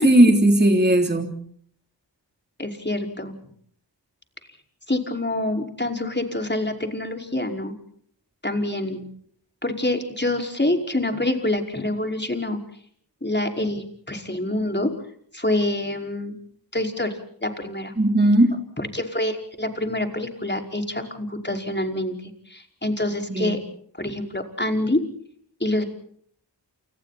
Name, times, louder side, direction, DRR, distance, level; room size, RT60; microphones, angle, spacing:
voice 1, 0.0-1.3 18.0-18.6 23.3-23.6, right 1 dB, 25° right, 4 dB, 3.5 m, -17 dB
voice 2, 2.6-3.4 4.9-7.7 8.4-9.1 9.6-12.6 13.2-14.9 15.3-16.4 16.7-17.9 18.8-23.6 24.0-25.0 25.6-25.8, left 1 dB, 25° left, 4 dB, 5.4 m, -26 dB
29.5 x 29.0 x 4.3 m, 0.63 s
wide cardioid pair, 50°, 44 cm